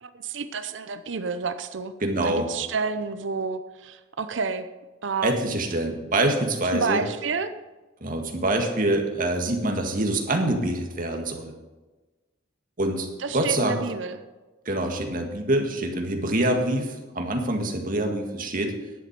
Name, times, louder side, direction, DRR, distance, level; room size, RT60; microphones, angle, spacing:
voice 1, 0.0-1.9 2.2-4.7 5.0-5.3 6.7-7.5 13.2-14.2, right 4 dB, 75° right, 11 dB, 0.7 m, -29 dB
voice 2, 2.0-2.5 5.2-7.0 8.0-11.5 12.8-13.1 13.3-13.8 14.7-18.7, right 1 dB, 45° right, 3 dB, 1.8 m, -25 dB
11.0 x 7.8 x 6.7 m, 1.2 s
head